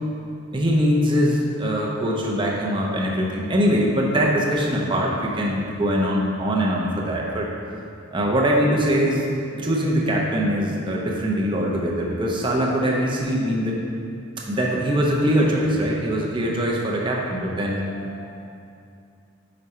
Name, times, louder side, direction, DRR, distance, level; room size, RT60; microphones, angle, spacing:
voice 1, 0.5-7.5 8.1-9.3 9.5-13.8 14.5-17.8, equal, 25° right, -2 dB, 0.6 m, -22 dB
voice 2, 17.4-18.5, left 3 dB, 40° left, 1 dB, 0.4 m, -45 dB
5.0 x 4.6 x 4.2 m, 2.5 s
head